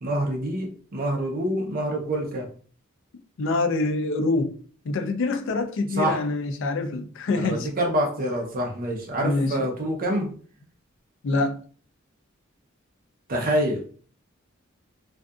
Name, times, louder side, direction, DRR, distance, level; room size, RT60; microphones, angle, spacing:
voice 1, 0.0-2.5 6.0-6.2 7.4-10.3 13.3-13.8, right 1 dB, 45° right, 0.5 m, -26 dB
voice 2, 3.4-4.5 4.9-7.7 9.2-9.7 11.2-11.6, left 3 dB, 65° left, 0.4 m, -25 dB
2.6 x 2.4 x 2.3 m
head